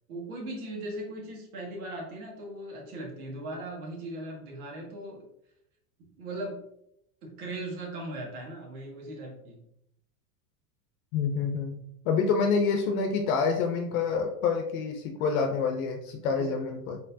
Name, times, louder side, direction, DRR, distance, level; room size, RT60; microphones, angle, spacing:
voice 1, 0.1-5.3 6.2-6.6 7.2-9.6 16.4-16.5, right 1 dB, 80° right, 0 dB, 1.7 m, -38 dB
voice 2, 11.1-11.8 12.0-17.0, left 5 dB, 70° left, 4 dB, 0.7 m, -27 dB
4.4 x 3.8 x 2.7 m, 0.77 s
supercardioid pair, 160°, 43 cm